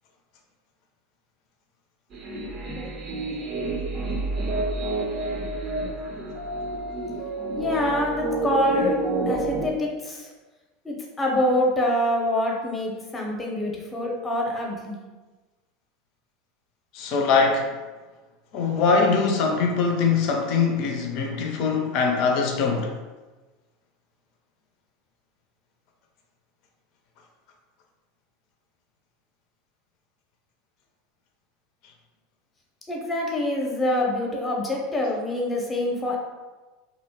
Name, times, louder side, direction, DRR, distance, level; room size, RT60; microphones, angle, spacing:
sound 1, 2.1-9.7, right 2 dB, 45° right, 0.5 m, -29 dB
voice 1, 7.5-9.0 9.3-10.3 10.8-15.0 32.9-36.2, left 1 dB, 15° left, -1 dB, 0.7 m, -25 dB
voice 2, 16.9-17.7 18.5-22.9, left 4 dB, 55° left, 2 dB, 0.4 m, -22 dB
2.6 x 2.0 x 2.7 m, 1.2 s
hypercardioid pair, 85°, 0 cm